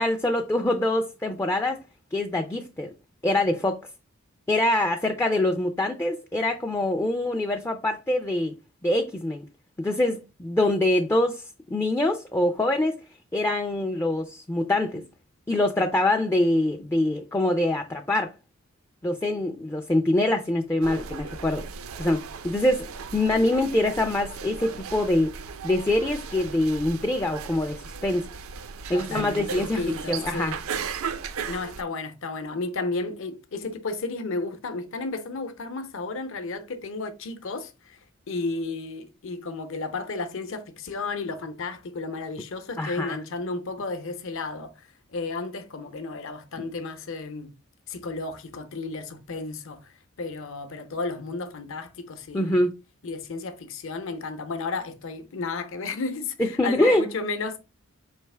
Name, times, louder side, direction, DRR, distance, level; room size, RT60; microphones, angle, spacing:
voice 1, 0.0-1.8 2.1-2.9 3.2-3.8 4.5-8.5 8.8-9.5 9.8-13.0 13.3-15.0 15.5-18.3 19.0-21.6 22.0-25.3 25.6-28.3 28.9-29.8 30.1-30.5 42.8-43.2 52.3-52.8 56.4-57.0, left 1 dB, 10° left, 0.3 m, -24 dB
sound 1, 20.8-31.8, right 6 dB, 75° right, 0.5 m, -36 dB
voice 2, 28.9-30.6 31.5-38.0 38.3-47.5 47.9-52.7 53.0-57.6, left 3 dB, 65° left, 0.7 m, -33 dB
4.8 x 3.3 x 3.3 m
head